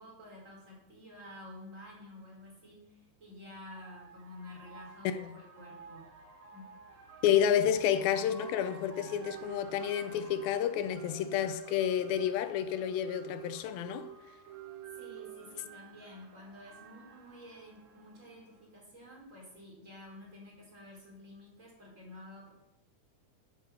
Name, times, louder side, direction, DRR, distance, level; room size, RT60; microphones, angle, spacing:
voice 1, 0.0-6.1 6.5-6.7 14.9-22.5, left 1 dB, 20° right, 3.8 m, -50 dB
sound 1, 1.6-1.7 3.1-18.7, right 4 dB, 85° right, 3.6 m, -54 dB
voice 2, 7.2-14.1, left 9 dB, 80° left, 2.5 m, -30 dB
sound 2, 8.4-8.8 9.1-10.6 10.9-12.4 12.7-14.2 14.5-15.4, right 14 dB, 70° right, 3.6 m, -47 dB
9.6 x 8.2 x 6.8 m
omnidirectional pair, 4.3 m